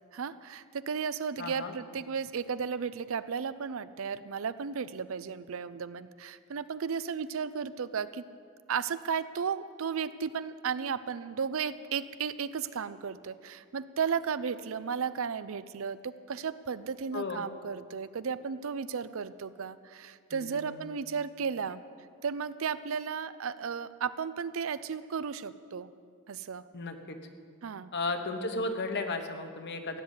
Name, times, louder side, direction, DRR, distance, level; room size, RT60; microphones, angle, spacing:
voice 1, 0.1-8.2 8.7-21.8 22.2-25.9 26.3-26.6 27.6-27.9, right 6 dB, 65° right, 14 dB, 0.5 m, -34 dB
voice 2, 1.4-1.7 17.1-17.4 20.3-21.0 26.7-27.2 27.9-30.0, left 3 dB, 50° left, 6 dB, 1.2 m, -34 dB
15.0 x 8.1 x 9.4 m, 2.2 s
head